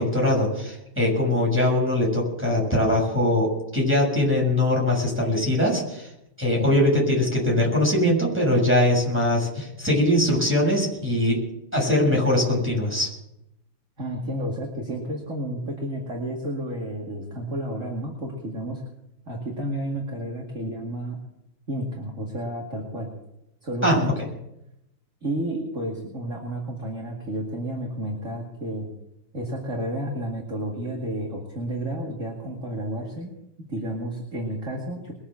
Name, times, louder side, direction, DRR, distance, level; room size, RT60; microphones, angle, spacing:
voice 1, 0.0-6.1 6.4-11.4 11.7-13.1 23.8-24.0, left 1 dB, 5° right, -3 dB, 6.8 m, -22 dB
voice 2, 14.0-18.8 19.3-21.2 21.7-23.1 23.6-24.1 25.2-28.9 29.3-33.3 33.6-35.1, right 1 dB, 40° right, -2 dB, 2.5 m, -31 dB
22.0 x 7.3 x 7.7 m, 0.83 s
omnidirectional pair, 2.3 m